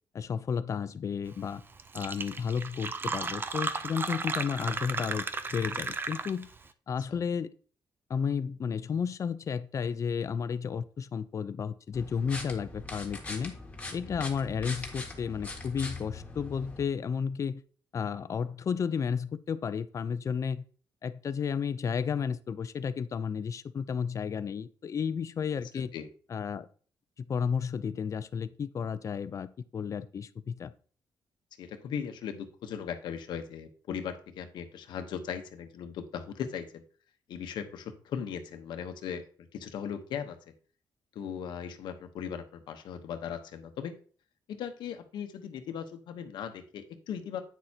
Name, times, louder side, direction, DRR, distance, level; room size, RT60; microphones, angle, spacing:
voice 1, 0.1-1.6 1.9-6.5 6.9-7.6 8.1-13.5 13.9-17.6 17.9-20.6 21.0-25.9 26.3-26.7 27.3-30.7, left 6 dB, 45° left, 14 dB, 0.5 m, -32 dB
Fill (with liquid), 1.5-1.6 1.8-6.6, right 4 dB, 30° right, 0.6 m, -34 dB
sound 1, 11.9-16.8, left 3 dB, 15° left, 1.7 m, -41 dB
voice 2, 25.7-26.1 31.6-36.8 37.3-39.2 39.5-40.4 41.1-43.9 44.5-47.4, left 8 dB, 85° left, 7 dB, 1.0 m, -38 dB
9.2 x 6.4 x 2.8 m, 0.42 s
cardioid pair, 110°, 8 cm